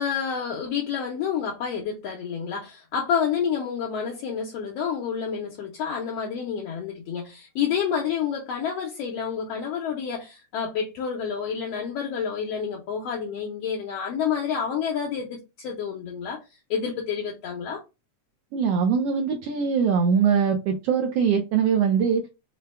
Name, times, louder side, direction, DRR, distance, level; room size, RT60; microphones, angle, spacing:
voice 1, 0.0-16.4 16.7-17.8, left 7 dB, 70° left, 1.6 m, -29 dB
voice 2, 18.5-22.2, right 6 dB, 80° right, 1.4 m, -22 dB
5.1 x 2.2 x 3.3 m
omnidirectional pair, 3.3 m